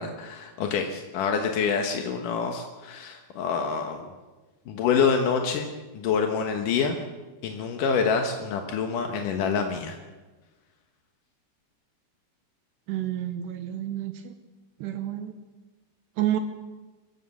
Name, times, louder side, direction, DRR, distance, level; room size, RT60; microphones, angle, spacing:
voice 1, 0.0-4.0 4.7-7.0 7.4-10.0, left 6 dB, 70° left, 4 dB, 2.0 m, -26 dB
voice 2, 12.9-14.3 14.8-15.4 16.2-16.4, right 12 dB, 75° right, 8 dB, 2.7 m, -29 dB
25.0 x 15.5 x 7.2 m, 1.3 s
omnidirectional pair, 5.5 m